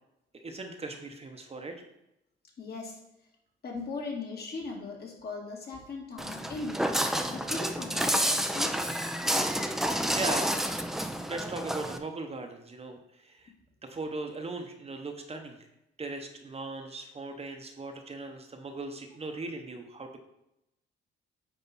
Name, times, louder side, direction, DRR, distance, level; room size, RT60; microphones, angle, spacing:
voice 1, 0.3-1.8 9.5-10.5 11.3-13.5 13.8-15.6 16.0-20.2, right 3 dB, 30° right, 4 dB, 0.9 m, -39 dB
voice 2, 2.6-3.0 3.6-6.8 7.3-8.8 9.8-9.9, left 3 dB, 55° left, -1 dB, 2.0 m, -39 dB
Walk footsteps, 6.2-12.0, equal, ahead, 0.5 m, -29 dB
9.5 x 3.3 x 4.1 m, 0.85 s
cardioid pair, 90°, 20 cm